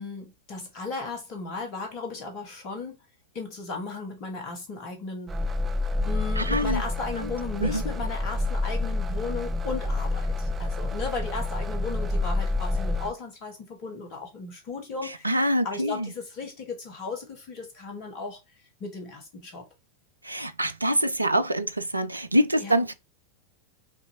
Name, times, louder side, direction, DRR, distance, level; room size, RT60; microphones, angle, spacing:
voice 1, 0.0-3.0 3.3-5.4 6.0-18.4 18.8-19.7 22.6-22.8, left 4 dB, 40° left, 1.3 m, -36 dB
sound 1, 5.3-13.1, left 2 dB, 20° right, 0.5 m, -28 dB
voice 2, 6.4-6.8 7.6-7.8 15.2-16.1 20.2-22.9, equal, 85° right, 0.4 m, -25 dB
5.9 x 2.7 x 2.8 m
figure-of-eight pair, 90°, 0 cm